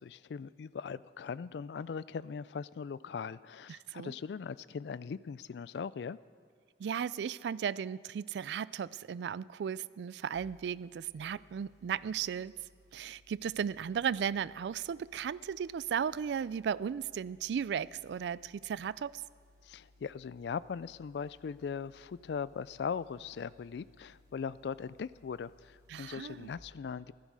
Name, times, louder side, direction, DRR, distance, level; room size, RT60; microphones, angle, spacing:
voice 1, 0.0-6.2 19.6-27.1, left 6 dB, 70° left, 18 dB, 0.3 m, -40 dB
voice 2, 3.7-4.1 6.8-12.5 12.9-19.2 25.9-26.5, right 7 dB, 75° right, 20 dB, 0.3 m, -35 dB
sound 1, 10.3-26.5, left 1 dB, 20° right, 3.6 m, -64 dB
15.5 x 13.5 x 4.8 m, 2.1 s
head